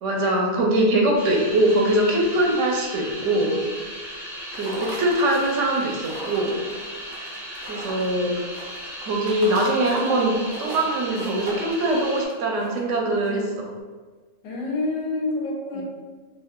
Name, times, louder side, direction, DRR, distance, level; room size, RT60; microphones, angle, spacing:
voice 1, 0.0-3.5 4.5-6.6 7.7-8.3 9.0-13.7 15.7-15.8, right 1 dB, 70° right, 0 dB, 0.9 m, -22 dB
sound 1, 1.1-12.2, equal, 5° right, 0.5 m, -36 dB
sound 2, 4.5-13.5, right 1 dB, 45° right, 0.6 m, -39 dB
voice 2, 14.4-15.8, left 2 dB, 90° left, -2 dB, 1.1 m, -27 dB
2.6 x 2.3 x 3.4 m, 1.4 s
omnidirectional pair, 1.4 m